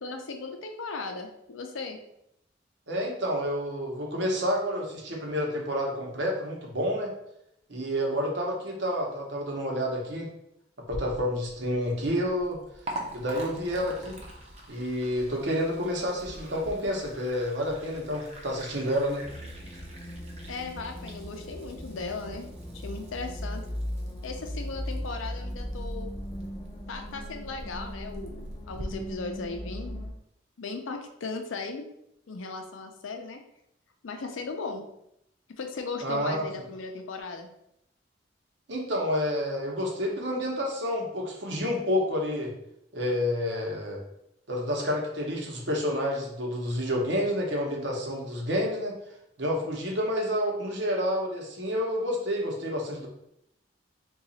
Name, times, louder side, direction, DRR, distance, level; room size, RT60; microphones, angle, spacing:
voice 1, 0.0-2.0 20.5-23.6 24.2-26.1 26.9-29.9 30.6-31.8 32.3-33.4 34.0-34.8 35.6-37.5, left 4 dB, 90° left, 5 dB, 0.5 m, -37 dB
voice 2, 2.9-7.1 7.7-10.3 10.9-12.6 13.1-14.2 14.7-19.2 36.0-36.5 38.7-42.5 42.9-44.0 44.5-49.0 49.4-53.1, equal, 65° right, -1 dB, 0.8 m, -29 dB
Liquid, 10.8-28.8, right 1 dB, 30° right, 0.5 m, -45 dB
sound 1, 19.2-30.1, equal, 20° left, 0.4 m, -38 dB
2.8 x 2.3 x 4.0 m, 0.78 s
head